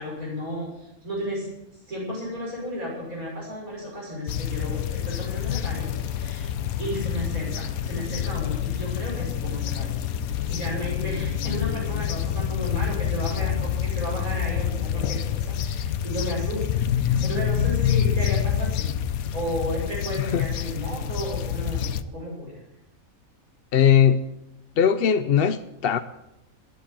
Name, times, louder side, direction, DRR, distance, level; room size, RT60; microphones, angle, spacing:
voice 1, 0.0-1.5 1.9-6.5 6.8-10.0 10.5-22.6, equal, 75° right, 6.4 m, -33 dB
sound 1, 4.3-22.0, left 9 dB, 85° left, 1.1 m, -27 dB
voice 2, 23.7-24.2 24.8-26.0, left 8 dB, 55° left, 0.7 m, -19 dB
13.5 x 9.6 x 8.5 m
omnidirectional pair, 1.5 m